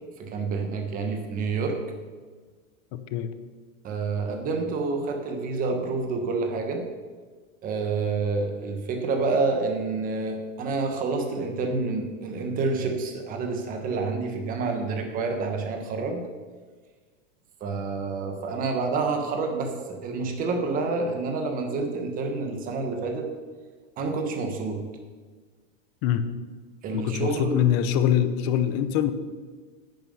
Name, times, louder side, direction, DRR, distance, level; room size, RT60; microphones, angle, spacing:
voice 1, 0.2-1.8 3.8-6.8 7.6-16.2 17.6-23.3 24.0-24.8 26.8-27.6, right 4 dB, 20° right, 4 dB, 1.4 m, -28 dB
voice 2, 2.9-3.3 26.0-26.2 26.9-29.1, left 10 dB, 30° left, 11 dB, 0.7 m, -24 dB
10.0 x 9.5 x 5.6 m, 1.5 s
supercardioid pair, 165°, 38 cm